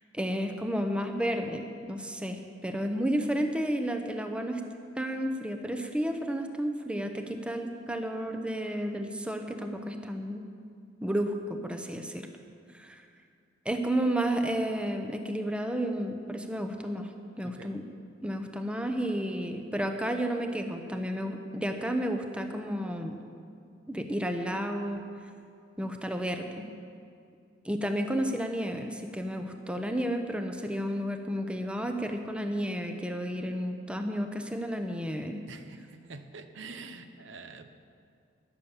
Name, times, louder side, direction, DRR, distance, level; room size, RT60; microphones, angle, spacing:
voice 1, 0.1-4.6 5.0-10.4 11.0-12.3 12.7-13.0 13.6-17.1 17.4-17.8 18.2-23.2 23.9-25.0 25.8-26.7 27.6-35.4, equal, 5° right, 5 dB, 0.8 m, -32 dB
voice 2, 35.5-37.7, right 4 dB, 75° right, 9 dB, 0.8 m, -46 dB
12.0 x 10.0 x 7.3 m, 2.3 s
head